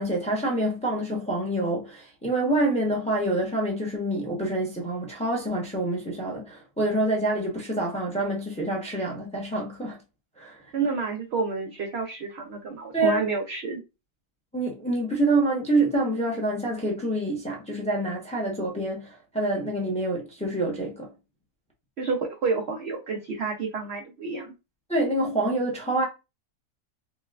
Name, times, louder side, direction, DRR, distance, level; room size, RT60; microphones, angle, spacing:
voice 1, 0.0-10.0 10.4-10.7 12.9-13.2 14.5-21.1 24.9-26.1, right 1 dB, 5° left, 0.6 m, -26 dB
voice 2, 10.7-13.8 22.0-24.5, right 4 dB, 65° right, 0.6 m, -29 dB
5.1 x 2.3 x 2.3 m
omnidirectional pair, 1.7 m